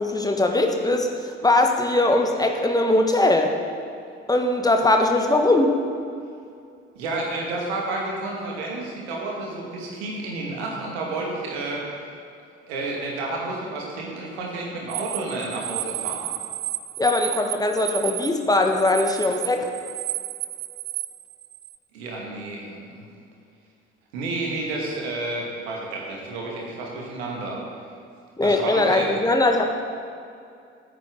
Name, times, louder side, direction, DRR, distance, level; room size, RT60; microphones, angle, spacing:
voice 1, 0.0-3.5 4.3-5.8 17.0-19.7 28.4-29.7, left 2 dB, 10° left, 3 dB, 1.5 m, -20 dB
voice 2, 7.0-11.8 12.7-16.2 21.9-23.1 24.1-27.6 28.4-29.2, right 2 dB, 70° right, -2 dB, 2.2 m, -30 dB
sound 1, 14.9-21.8, right 16 dB, 55° right, 0.6 m, -32 dB
16.0 x 9.1 x 3.9 m, 2.4 s
figure-of-eight pair, 50°, 33 cm